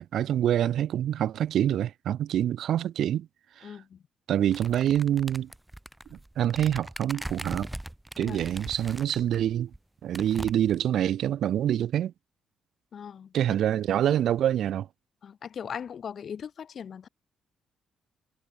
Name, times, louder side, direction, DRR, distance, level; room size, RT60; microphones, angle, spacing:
voice 1, 0.0-3.3 3.6-3.7 4.3-5.5 6.1-7.7 8.2-9.7 10.0-12.1 13.3-14.9, right 11 dB, 70° right, 0.7 m, -26 dB
voice 2, 3.6-4.0 8.2-8.4 12.9-13.3 15.2-17.1, left 7 dB, 55° left, 2.5 m, -39 dB
sound 1, 4.5-9.4 9.7-9.8 10.1-10.9, right 1 dB, 10° right, 1.7 m, -40 dB
cardioid pair, 90°, 0 cm